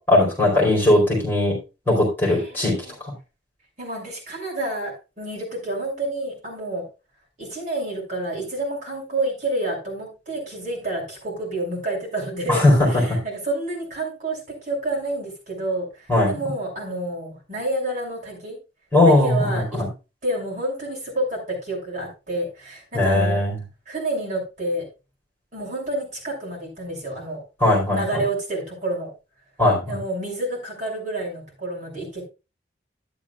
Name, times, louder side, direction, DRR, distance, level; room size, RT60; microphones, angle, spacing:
voice 1, 0.1-1.5 1.9-2.7 3.0-3.1 12.5-12.7 16.1-16.3 18.9-19.9 22.9-23.5 27.6-28.0 29.6-30.0, left 1 dB, 10° left, -3 dB, 4.5 m, -18 dB
voice 2, 2.2-2.9 3.8-6.9 7.4-12.6 12.9-18.6 19.0-19.8 20.2-23.4 23.9-24.9 25.5-27.4 27.9-29.1 29.9-32.2, right 1 dB, 40° right, -2 dB, 6.3 m, -29 dB
13.0 x 10.5 x 2.4 m, 0.29 s
head